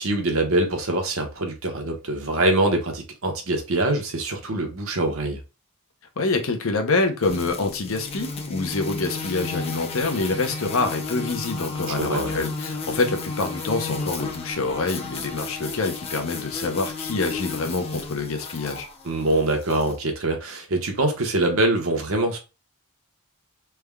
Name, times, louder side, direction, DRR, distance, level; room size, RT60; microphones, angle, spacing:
voice 1, 0.0-5.4 12.0-12.4 19.0-22.4, right 2 dB, 70° right, 0.9 m, -24 dB
voice 2, 6.2-18.9, left 3 dB, 70° left, 0.7 m, -26 dB
sound 1, 7.2-19.9, left 3 dB, 25° left, 0.5 m, -33 dB
3.4 x 2.2 x 3.4 m
head